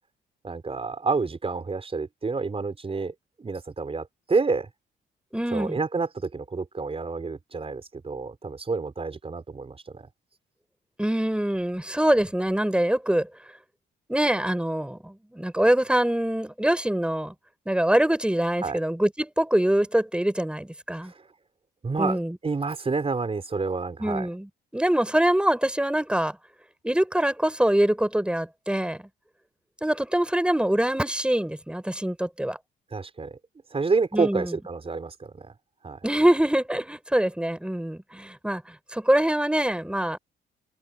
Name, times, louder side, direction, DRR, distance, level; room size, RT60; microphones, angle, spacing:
voice 1, 0.4-4.7 5.5-10.1 18.6-18.8 21.0-21.1 21.8-24.3 32.9-33.4 33.7-35.5 35.8-36.0, right 4 dB, 30° right, 4.5 m, -29 dB
voice 2, 5.3-5.8 11.0-13.3 14.1-17.3 17.7-21.1 22.0-22.4 24.0-26.4 26.8-29.0 29.8-32.6 34.1-34.5 36.0-40.2, right 1 dB, 5° right, 6.1 m, -24 dB
cardioid pair, 90°, 20 cm